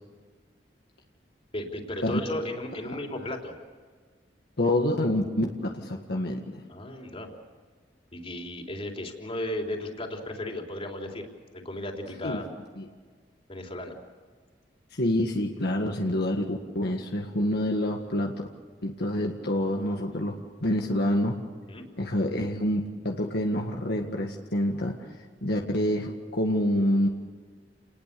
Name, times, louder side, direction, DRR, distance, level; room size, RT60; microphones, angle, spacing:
voice 1, 1.5-3.5 6.7-7.3 8.1-11.3 11.5-12.5 13.5-14.0 21.7-21.9, left 1 dB, 35° left, 2 dB, 3.7 m, -35 dB
voice 2, 4.6-6.4 12.2-12.4 12.8-12.9 14.9-18.5 18.8-20.4 20.6-21.4 22.0-25.0 25.4-27.1, left 1 dB, 65° left, 1 dB, 1.8 m, -27 dB
29.5 x 20.0 x 6.9 m, 1.5 s
head